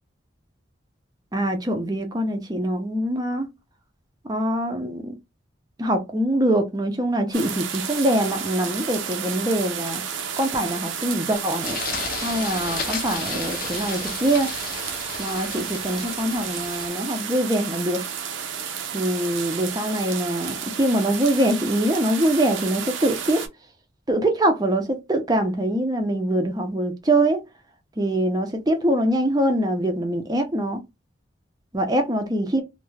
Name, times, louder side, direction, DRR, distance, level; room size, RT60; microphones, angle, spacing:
voice 1, 1.3-3.5 4.2-5.1 5.8-10.0 10.4-11.8 12.2-14.5 15.2-18.0 18.9-23.4 24.1-27.4 28.0-30.8 31.7-32.6, right 1 dB, 20° right, 0.5 m, -23 dB
sound 1, 7.3-23.5, right 7 dB, 85° right, 0.5 m, -32 dB
sound 2, 11.6-16.9, left 6 dB, 45° left, 0.4 m, -34 dB
2.3 x 2.1 x 3.1 m
head